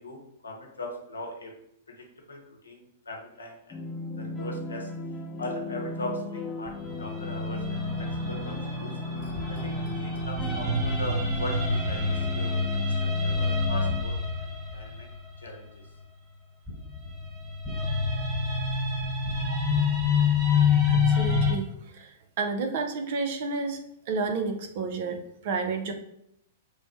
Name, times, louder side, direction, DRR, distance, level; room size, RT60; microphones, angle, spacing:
voice 1, 0.0-1.5 1.9-3.8 4.2-4.9 5.4-8.9 9.5-12.9 13.2-15.1 15.4-15.8, left 1 dB, 85° left, 1 dB, 0.8 m, -39 dB
sound 1, 3.7-14.0, left 2 dB, 20° left, 0.4 m, -36 dB
sound 2, 4.1-14.4 15.0-15.1, left 1 dB, 40° left, 0.8 m, -49 dB
sound 3, 6.7-15.8 16.7-21.5, left 4 dB, 10° right, 1.3 m, -27 dB
voice 2, 20.8-23.8 24.1-25.9, right 4 dB, 55° right, 6 dB, 0.5 m, -31 dB
3.1 x 2.1 x 4.1 m, 0.76 s
hypercardioid pair, 110°, 0 cm